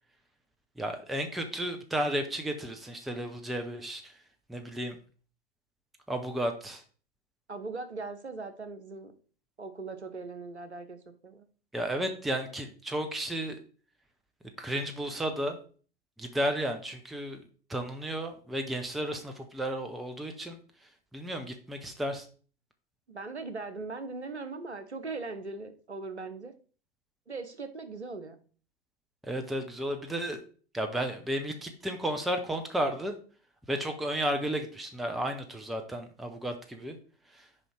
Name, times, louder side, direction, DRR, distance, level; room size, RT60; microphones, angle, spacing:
voice 1, 0.8-4.1 4.5-5.0 6.1-6.8 11.7-13.6 14.6-15.6 16.2-17.4 17.7-20.6 21.1-22.3 29.2-30.4 30.7-33.2 33.7-37.0 37.3-37.5, right 1 dB, ahead, 6 dB, 0.4 m, -33 dB
voice 2, 7.5-9.1 9.6-11.0 11.2-11.4 23.1-26.5 27.3-28.3, right 3 dB, 85° right, 9 dB, 1.1 m, -39 dB
5.3 x 5.2 x 4.6 m, 0.40 s
figure-of-eight pair, 100°, 33 cm